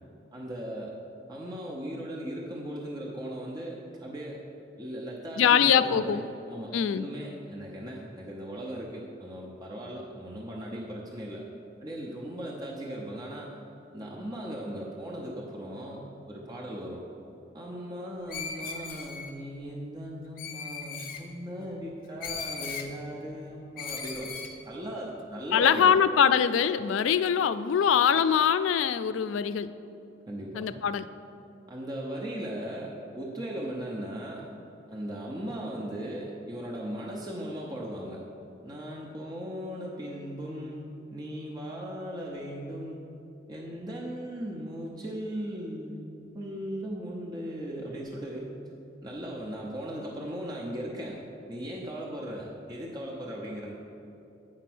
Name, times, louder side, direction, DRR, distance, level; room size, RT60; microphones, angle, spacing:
voice 1, 0.3-1.0 1.3-4.4 4.8-11.4 11.8-13.6 13.9-17.0 17.5-24.3 24.6-26.0 30.3-30.7 31.7-34.4 34.9-38.2 38.6-43.0 43.5-48.5 49.0-51.2 51.5-53.7, equal, 20° right, -3 dB, 0.7 m, -38 dB
voice 2, 5.4-6.2 6.7-7.1 25.5-29.7 30.5-31.0, left 8 dB, 90° left, 13 dB, 0.3 m, -23 dB
Screech, 18.3-19.3 20.4-21.2 22.2-22.9 23.8-24.5, left 5 dB, 50° left, 0.8 m, -37 dB
8.8 x 4.6 x 6.1 m, 2.8 s
head